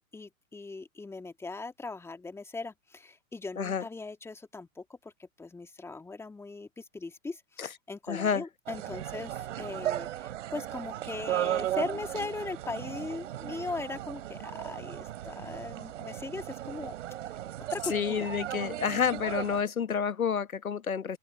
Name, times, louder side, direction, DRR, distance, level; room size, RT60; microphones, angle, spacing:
voice 1, 0.0-16.9 17.7-18.3, left 3 dB, 5° left, 1.6 m, -39 dB
voice 2, 8.1-8.4 17.9-21.2, left 7 dB, 90° left, 1.1 m, -29 dB
sound 1, 8.7-19.6, right 13 dB, 60° right, 3.8 m, -36 dB
open air
hypercardioid pair, 115°, 41 cm